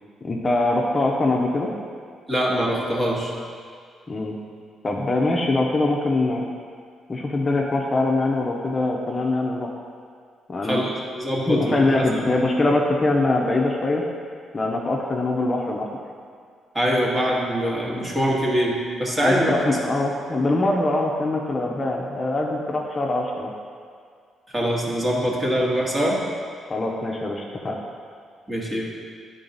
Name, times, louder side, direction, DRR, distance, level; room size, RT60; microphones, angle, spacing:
voice 1, 0.2-1.7 4.1-4.4 4.8-6.4 7.1-9.7 10.5-10.8 11.4-14.0 14.5-15.9 19.2-23.5 26.6-27.8, left 2 dB, 30° left, -1 dB, 0.7 m, -23 dB
voice 2, 2.3-3.3 10.6-12.2 16.7-19.8 24.5-26.3 28.5-28.9, equal, 20° right, -3 dB, 1.4 m, -23 dB
9.1 x 3.9 x 4.0 m, 2.1 s
cardioid pair, 90°, 0 cm